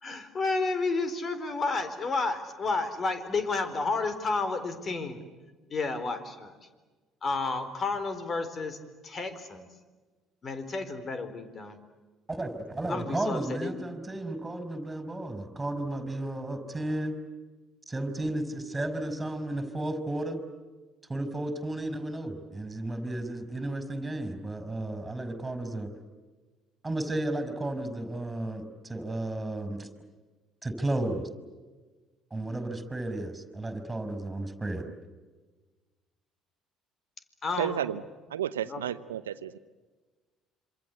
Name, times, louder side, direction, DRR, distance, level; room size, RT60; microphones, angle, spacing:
voice 1, 0.0-5.2 5.7-6.6 7.2-8.8 9.0-9.7 10.4-11.8 12.9-13.8 37.4-37.8 38.6-38.8, left 3 dB, 40° left, 10 dB, 4.2 m, -31 dB
voice 2, 12.3-17.1 17.9-20.4 21.1-25.9 26.8-29.9 30.6-31.2 32.3-34.9, right 1 dB, 15° right, 10 dB, 5.3 m, -33 dB
voice 3, 37.6-38.0 38.3-39.6, right 10 dB, 90° right, 14 dB, 0.8 m, -32 dB
27.0 x 26.0 x 8.4 m, 1.3 s
hypercardioid pair, 60°, 0 cm